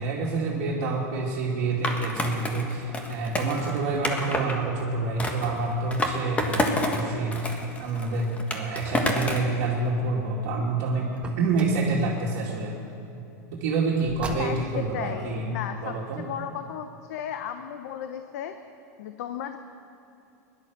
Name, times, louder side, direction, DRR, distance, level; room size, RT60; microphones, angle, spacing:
voice 1, 0.0-12.7 13.5-15.5 15.8-16.2, right 3 dB, 60° right, -4 dB, 2.2 m, -28 dB
Skateboard, 1.8-4.6 5.2-7.0 7.3-9.5, left 1 dB, 15° left, 1.6 m, -29 dB
Car, 11.1-11.9 14.0-14.9, right 2 dB, 10° right, 1.6 m, -38 dB
voice 2, 14.4-18.5 19.0-19.6, left 9 dB, 70° left, 8 dB, 0.8 m, -35 dB
17.0 x 11.5 x 6.5 m, 2.9 s
supercardioid pair, 125°, 9 cm